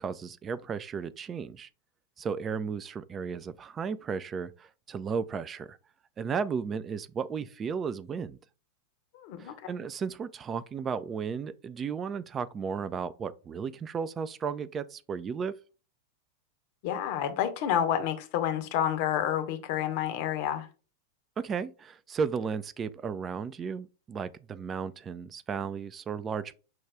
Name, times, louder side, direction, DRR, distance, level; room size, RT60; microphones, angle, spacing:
voice 1, 0.0-1.7 2.2-5.8 6.2-8.4 9.4-15.5 21.4-26.6, right 6 dB, 25° right, 0.3 m, -34 dB
voice 2, 9.1-9.7 16.8-20.7, left 10 dB, 45° left, 0.7 m, -29 dB
6.0 x 2.3 x 3.4 m
figure-of-eight pair, 90°, 0 cm